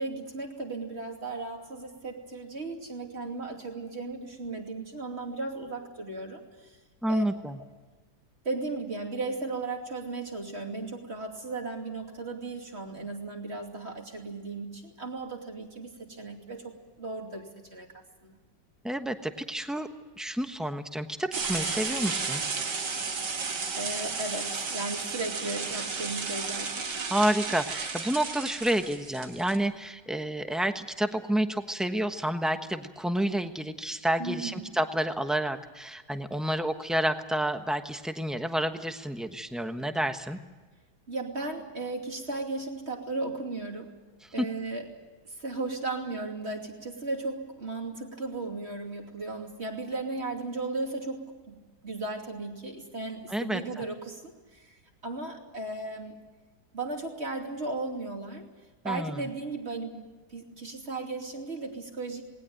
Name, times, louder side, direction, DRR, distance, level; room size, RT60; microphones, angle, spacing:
voice 1, 0.0-6.8 7.1-7.2 8.4-17.9 18.2-18.4 23.7-26.9 34.2-34.7 41.1-44.0 44.3-44.9 45.2-54.2 54.5-56.2 56.7-58.5 58.8-62.2, right 3 dB, 35° right, 2 dB, 3.0 m, -36 dB
voice 2, 7.0-7.6 18.8-19.9 20.2-22.4 27.1-40.4 44.4-44.5 53.3-53.8 58.8-59.2, right 1 dB, ahead, 7 dB, 0.9 m, -29 dB
sound 1, 21.3-29.6, right 4 dB, 75° right, 2.5 m, -33 dB
20.0 x 19.0 x 9.1 m, 1.3 s
omnidirectional pair, 1.9 m